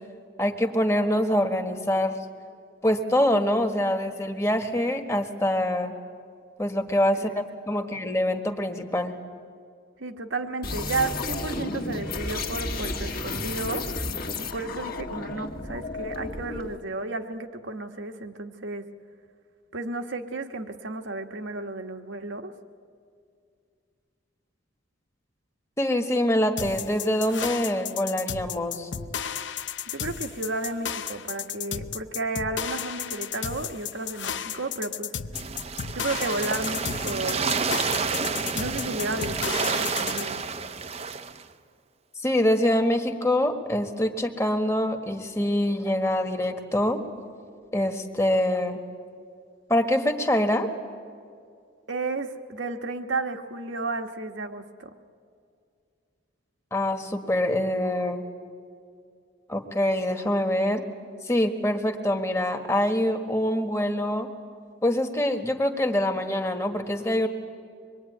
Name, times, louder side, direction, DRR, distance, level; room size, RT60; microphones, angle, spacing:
voice 1, 0.4-2.2 2.8-5.9 6.6-9.1 25.8-28.9 42.2-47.0 47.7-48.8 49.7-50.7 56.7-58.2 59.5-60.8 61.2-64.3 64.8-67.3, left 1 dB, 15° left, 5 dB, 1.6 m, -25 dB
voice 2, 10.0-13.9 14.4-18.8 19.7-22.5 29.9-35.1 35.9-37.5 38.1-38.2 38.5-40.4 51.9-54.9, right 3 dB, 80° right, 5 dB, 1.5 m, -32 dB
sound 1, 10.6-16.8, left 3 dB, 50° left, 1.7 m, -32 dB
sound 2, 26.6-40.3, left 8 dB, 70° left, 0.8 m, -34 dB
sound 3, 35.3-41.4, right 4 dB, 35° right, 0.8 m, -29 dB
25.0 x 22.0 x 9.4 m, 2.3 s
head